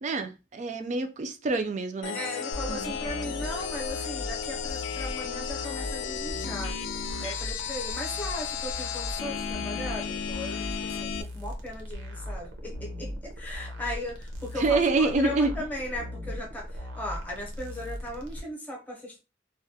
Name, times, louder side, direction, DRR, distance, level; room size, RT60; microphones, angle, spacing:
voice 1, 0.0-2.2 2.7-2.9 14.6-15.5, right 3 dB, 40° right, 0.3 m, -26 dB
sound 1, 2.0-11.2, left 8 dB, 75° left, 0.3 m, -34 dB
voice 2, 2.1-6.8 7.2-19.2, left 1 dB, 10° left, 0.6 m, -37 dB
sound 2, 2.5-18.4, equal, 80° right, 0.6 m, -38 dB
2.2 x 2.0 x 2.7 m
head